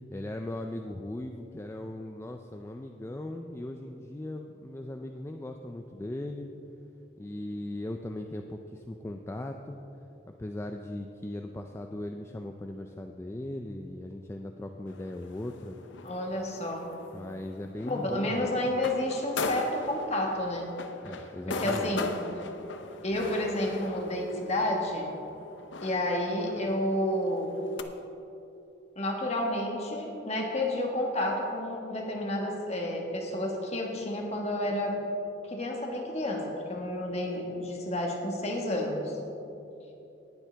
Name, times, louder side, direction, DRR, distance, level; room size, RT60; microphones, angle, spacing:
voice 1, 0.1-6.5 7.2-9.8 10.3-15.8 17.1-18.7 21.0-22.0, left 1 dB, 15° left, 4 dB, 0.3 m, -38 dB
sound 1, 14.9-27.8, left 3 dB, 80° left, 0.6 m, -40 dB
voice 2, 16.0-16.9 17.9-20.7 21.5-22.1 23.0-25.1 25.8-27.6 28.9-35.0 35.4-39.2, left 1 dB, 35° left, 0 dB, 1.5 m, -30 dB
18.5 x 7.5 x 3.4 m, 2.9 s
head